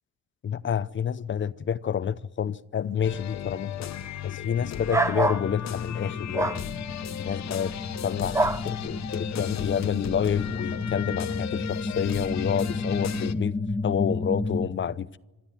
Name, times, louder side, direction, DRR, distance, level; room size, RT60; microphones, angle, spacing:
voice 1, 0.4-3.9 4.2-6.6 7.2-7.7 8.0-8.4 8.6-13.5 13.8-15.2, left 8 dB, 40° left, 0.7 m, -28 dB
sound 1, 3.0-13.3, left 10 dB, 65° left, 1.0 m, -35 dB
sound 2, 4.9-5.4 6.3-6.6 8.3-8.6, right 2 dB, 10° right, 0.7 m, -24 dB
sound 3, 5.3-14.7, left 2 dB, 10° left, 1.4 m, -33 dB
25.5 x 13.0 x 9.2 m
cardioid pair, 90°, 30 cm